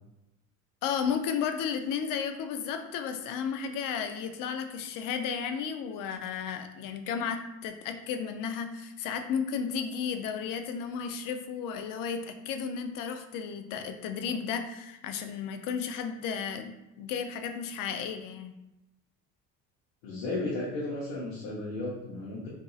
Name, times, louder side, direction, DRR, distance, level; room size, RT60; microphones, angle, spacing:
voice 1, 0.8-18.5, left 7 dB, 60° left, 7 dB, 0.5 m, -33 dB
voice 2, 20.0-22.5, left 2 dB, 90° left, -5 dB, 0.9 m, -34 dB
3.8 x 2.7 x 2.4 m, 0.92 s
supercardioid pair, 100°, 37 cm